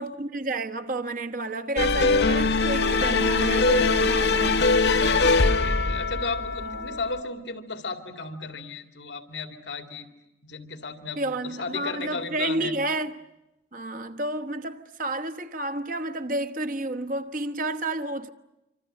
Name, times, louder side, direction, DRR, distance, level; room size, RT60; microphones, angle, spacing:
voice 1, 0.0-4.7 6.6-7.0 11.2-13.2 13.7-18.3, right 2 dB, 50° right, 1.3 m, -31 dB
sound 1, 1.8-7.2, left 3 dB, 70° left, 1.0 m, -22 dB
voice 2, 4.9-10.1 10.4-12.7, left 4 dB, 90° left, 2.5 m, -35 dB
26.0 x 25.5 x 9.0 m
head